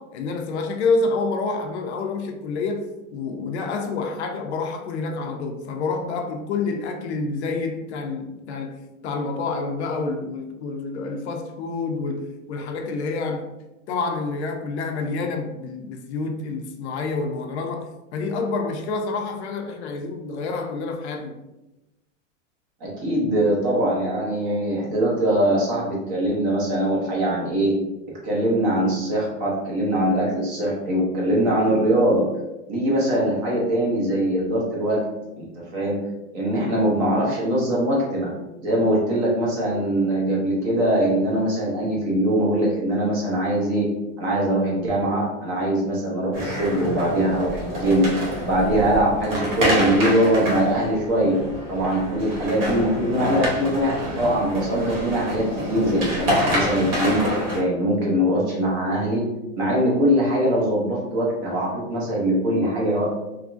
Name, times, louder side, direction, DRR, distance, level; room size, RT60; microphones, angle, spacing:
voice 1, 0.0-13.5 13.9-21.4, left 3 dB, 60° left, 0.5 m, -28 dB
voice 2, 22.8-27.7 28.2-32.3 32.7-35.0 35.3-36.0 36.3-38.3 38.6-43.9 44.2-51.4 51.7-57.2 57.5-59.2 59.5-63.1, right 1 dB, 25° right, 0.5 m, -22 dB
sound 1, 46.3-57.6, equal, 50° right, 1.0 m, -27 dB
2.9 x 2.4 x 2.4 m
supercardioid pair, 170°, 38 cm